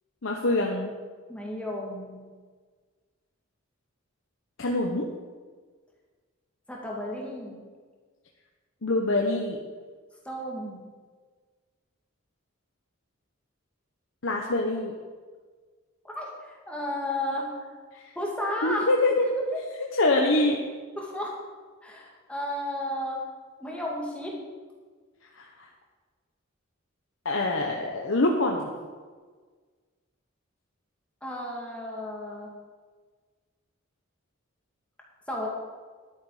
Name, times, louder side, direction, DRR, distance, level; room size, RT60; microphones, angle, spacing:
voice 1, 0.2-0.9 4.6-5.1 8.8-9.6 14.2-14.9 17.9-18.0 18.6-19.2 19.9-20.6 25.4-25.5 27.2-28.7, left 2 dB, 65° left, 0 dB, 1.1 m, -24 dB
voice 2, 1.3-2.2 6.7-7.6 10.2-10.9 16.0-17.5 18.2-18.9 21.0-21.4 21.8-23.2 23.6-24.4 31.2-32.5 35.3-35.5, left 1 dB, 5° left, -3 dB, 2.3 m, -33 dB
11.5 x 9.4 x 5.0 m, 1.5 s
head